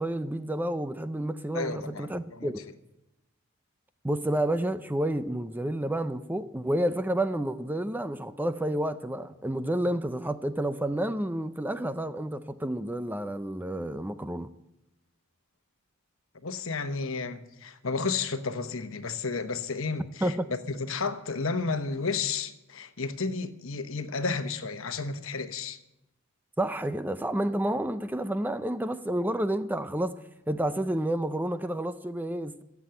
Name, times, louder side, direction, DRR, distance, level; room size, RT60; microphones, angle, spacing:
voice 1, 0.0-2.6 4.0-14.5 20.2-20.5 26.6-30.2 30.5-32.6, right 1 dB, 10° right, 0.5 m, -30 dB
voice 2, 1.5-2.5 16.4-25.8, left 4 dB, 65° left, 1.1 m, -32 dB
15.0 x 8.3 x 8.9 m
head